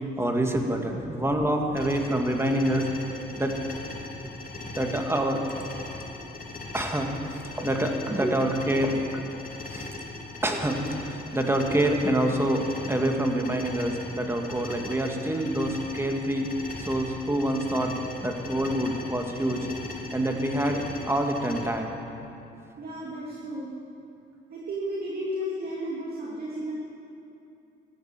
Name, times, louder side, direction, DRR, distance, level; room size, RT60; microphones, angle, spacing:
voice 1, 0.2-2.9 3.4-3.6 4.8-5.4 6.7-7.1 7.6-9.2 9.7-9.9 10.4-16.5 16.8-17.9 18.2-19.6 20.1-22.0, right 1 dB, 10° right, 3 dB, 1.9 m, -26 dB
sound 1, 1.8-21.6, left 2 dB, 45° left, 2.5 m, -39 dB
voice 2, 22.8-23.7 24.5-26.7, equal, 50° right, -5 dB, 2.6 m, -33 dB
15.0 x 12.0 x 7.5 m, 2.8 s
cardioid pair, 90°, 20 cm